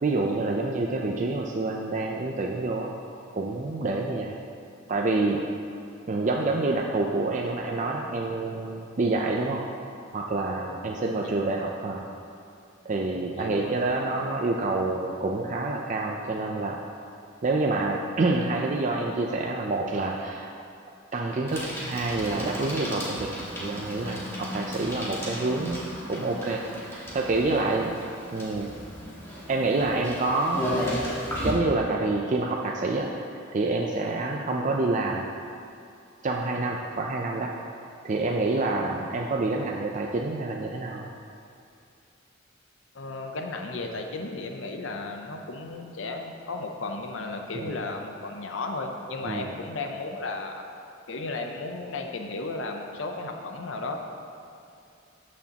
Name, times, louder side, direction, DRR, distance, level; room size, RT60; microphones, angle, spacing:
voice 1, 0.0-2.9 3.3-4.3 4.9-5.5 6.1-9.6 10.1-12.1 12.8-16.8 17.4-20.5 21.1-23.3 23.6-28.0 28.3-28.7 29.5-30.8 31.4-35.2 36.2-37.5 38.0-41.1 47.5-47.8 49.2-49.5, right 2 dB, 40° right, 0 dB, 0.5 m, -27 dB
voice 2, 13.4-13.7 42.9-50.6 51.1-54.0, left 3 dB, 70° left, 4 dB, 0.6 m, -34 dB
Bicycle, 21.5-31.5, equal, 15° left, 1.7 m, -35 dB
13.0 x 6.3 x 2.9 m, 2.5 s
head